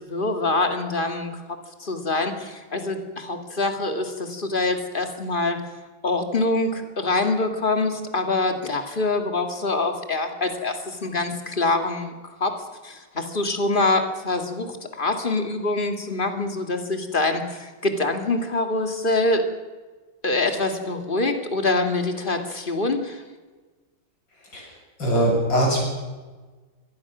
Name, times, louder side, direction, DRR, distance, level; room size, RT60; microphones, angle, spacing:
voice 1, 0.0-1.3 1.8-5.6 6.0-12.1 12.4-12.5 12.8-19.5 20.2-23.2, left 2 dB, 25° left, 5 dB, 2.1 m, -25 dB
voice 2, 25.0-25.8, right 1 dB, 60° left, -2 dB, 7.7 m, -20 dB
24.5 x 17.5 x 6.1 m, 1.3 s
omnidirectional pair, 2.3 m